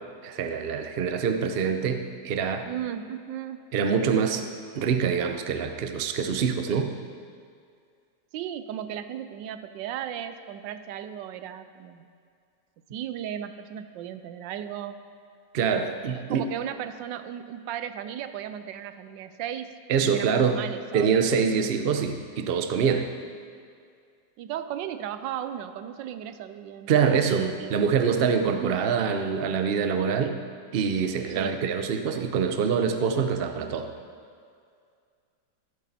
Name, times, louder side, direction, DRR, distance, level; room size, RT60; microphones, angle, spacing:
voice 1, 0.2-2.7 3.7-4.5 4.7-6.9 15.5-16.4 19.9-20.6 20.9-23.1 26.9-30.4 30.7-33.9, right 6 dB, 55° right, 7 dB, 0.6 m, -25 dB
voice 2, 2.6-3.6 8.3-12.1 12.9-15.0 16.1-21.1 24.4-27.7 28.6-28.8 31.4-31.6, right 10 dB, 85° right, 11 dB, 1.3 m, -36 dB
13.0 x 12.0 x 4.1 m, 2.2 s
omnidirectional pair, 1.9 m